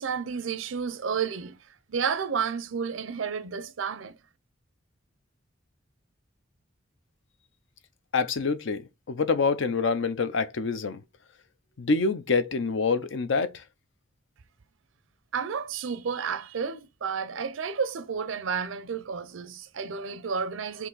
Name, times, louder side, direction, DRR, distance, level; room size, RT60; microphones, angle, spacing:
voice 1, 0.0-4.2 15.3-20.9, right 6 dB, 85° right, 0.5 m, -31 dB
voice 2, 8.1-11.0 11.8-13.6, left 4 dB, 70° left, 0.6 m, -26 dB
4.5 x 2.7 x 3.9 m
head